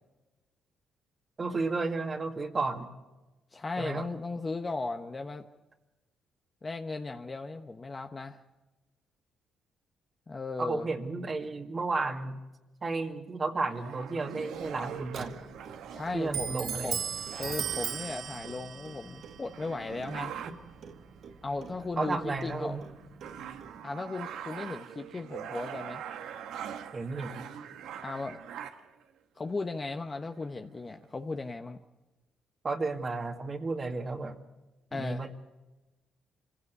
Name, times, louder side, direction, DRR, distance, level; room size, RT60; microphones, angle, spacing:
voice 1, 1.4-2.9 3.8-4.1 10.6-12.4 12.8-15.3 16.1-17.0 20.4-20.5 22.0-22.9 26.9-27.4 32.6-34.4 34.9-35.3, right 3 dB, 35° right, 3 dB, 2.1 m, -33 dB
voice 2, 3.5-5.4 6.6-8.4 10.3-10.9 15.9-17.0 17.4-20.3 21.4-22.8 23.8-26.0 28.0-28.4 29.4-31.8 34.9-35.2, left 3 dB, 30° left, 6 dB, 1.0 m, -36 dB
sound 1, 13.7-18.7 19.2-19.3 19.5-20.8 21.5-21.9 22.3-29.0 29.8-29.9 30.3-31.0, right 9 dB, 85° right, 1.4 m, -43 dB
Clock, 14.5-23.8, right 7 dB, 65° right, 1.7 m, -39 dB
25.5 x 16.5 x 8.2 m, 1.1 s
cardioid pair, 90°, 0 cm